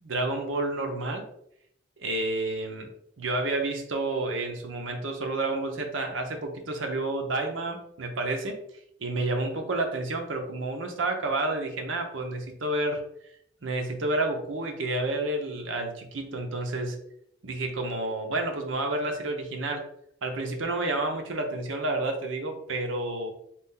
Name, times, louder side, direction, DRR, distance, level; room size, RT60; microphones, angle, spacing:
voice 1, 0.0-1.2 2.0-2.9 3.2-8.6 9.0-13.0 13.6-17.0 17.4-19.9 20.2-23.3, right 2 dB, 90° right, 3 dB, 0.8 m, -30 dB
4.1 x 2.4 x 3.7 m, 0.73 s
head